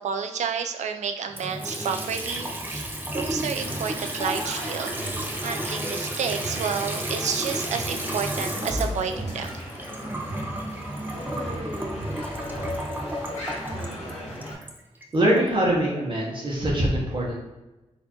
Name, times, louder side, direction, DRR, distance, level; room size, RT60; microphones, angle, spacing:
voice 1, 0.0-2.9 3.1-4.9 5.4-9.5, right 6 dB, 85° right, 7 dB, 0.4 m, -30 dB
Water tap faucet / Sink (filling or washing) / Trickle dribble, 1.3-15.4, right 1 dB, 15° right, 0.5 m, -32 dB
sound 1, 3.6-14.5, equal, 80° left, 1.4 m, -36 dB
voice 2, 15.1-17.4, right 1 dB, 45° right, -4 dB, 0.9 m, -23 dB
4.1 x 2.6 x 2.8 m, 1.0 s
wide cardioid pair, 100°, 12 cm